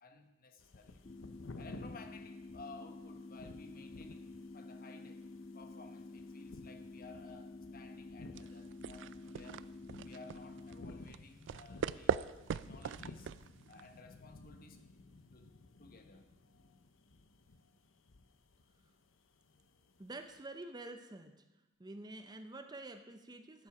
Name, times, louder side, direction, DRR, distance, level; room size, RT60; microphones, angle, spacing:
voice 1, 0.0-1.0 1.6-5.2 5.5-9.7 10.0-13.3 13.7-14.8 15.3-16.3, left 3 dB, 50° left, 7 dB, 1.1 m, -56 dB
sound 1, 0.6-20.4, left 2 dB, 85° left, 0.8 m, -56 dB
sound 2, 1.0-11.0, left 2 dB, 30° left, 0.4 m, -50 dB
sound 3, 8.3-14.0, right 7 dB, 65° right, 0.3 m, -40 dB
voice 2, 20.0-21.4 21.8-23.7, right 2 dB, 20° right, 8 dB, 0.6 m, -48 dB
12.0 x 10.5 x 4.9 m, 1.0 s
head